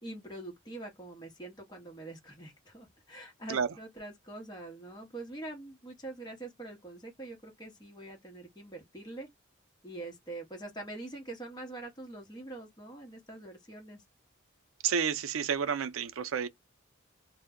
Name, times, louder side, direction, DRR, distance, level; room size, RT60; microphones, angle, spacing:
voice 1, 0.0-9.3 9.8-14.0, right 2 dB, 20° left, 0.8 m, -44 dB
voice 2, 14.8-16.5, right 7 dB, 85° right, 0.4 m, -30 dB
2.2 x 2.0 x 3.5 m
head